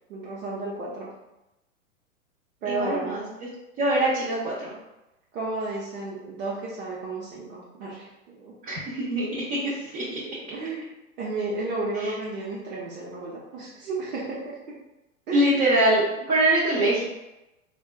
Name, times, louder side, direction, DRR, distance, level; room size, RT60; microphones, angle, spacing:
voice 1, 0.1-1.1 2.6-3.2 5.3-8.6 10.5-10.9 11.2-14.8 15.3-15.6, right 3 dB, 75° right, -6 dB, 0.9 m, -32 dB
voice 2, 2.7-3.2 3.8-4.7 8.6-10.0 12.0-12.1 15.3-17.1, right 1 dB, 30° right, -8 dB, 0.8 m, -23 dB
3.4 x 2.3 x 2.3 m, 0.96 s
hypercardioid pair, 125°, 42 cm